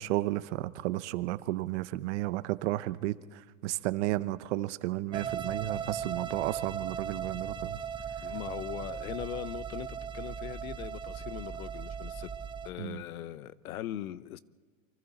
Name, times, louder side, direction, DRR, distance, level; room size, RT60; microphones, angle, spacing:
voice 1, 0.0-7.8 12.8-13.0, right 17 dB, 55° right, 14 dB, 0.9 m, -33 dB
sound 1, 5.1-12.7, right 7 dB, 10° right, 0.6 m, -37 dB
voice 2, 8.2-12.3 12.6-14.4, left 12 dB, 80° left, 16 dB, 1.0 m, -40 dB
28.5 x 24.5 x 4.2 m, 1.4 s
supercardioid pair, 140°, 42 cm